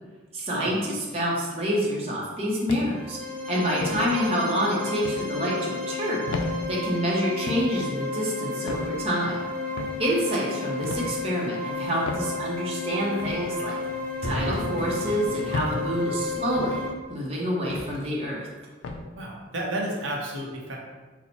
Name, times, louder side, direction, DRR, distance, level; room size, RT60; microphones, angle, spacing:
voice 1, 0.3-3.2 3.5-6.3 6.7-9.5 10.0-13.8 14.2-16.8 17.1-18.5, equal, 30° right, -4 dB, 0.6 m, -27 dB
sound 1, 2.7-3.1 3.8-4.1 5.0-5.3 6.3-6.5 7.5-7.7 8.7-8.9 9.8-10.0 10.8-11.1 12.0-12.3 13.2-13.4 14.3-14.5 15.5-15.8 16.6-16.8 17.7-18.0 18.8-19.0, left 3 dB, 85° left, 0.4 m, -33 dB
sound 2, 2.8-16.9, left 3 dB, 5° left, 0.4 m, -32 dB
sound 3, 11.7-16.9, equal, 65° left, 1.4 m, -38 dB
voice 2, 19.2-20.8, right 1 dB, 80° right, -1 dB, 0.7 m, -31 dB
4.1 x 2.1 x 4.1 m, 1.3 s
head